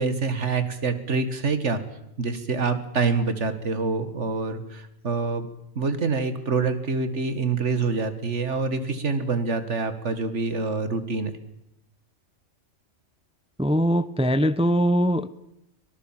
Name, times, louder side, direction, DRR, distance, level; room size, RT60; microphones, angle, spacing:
voice 1, 0.0-1.8 2.2-5.5 5.8-11.3, right 4 dB, 65° right, 2.2 m, -26 dB
voice 2, 13.6-15.3, equal, 5° right, 0.6 m, -21 dB
24.0 x 18.5 x 7.5 m
omnidirectional pair, 1.3 m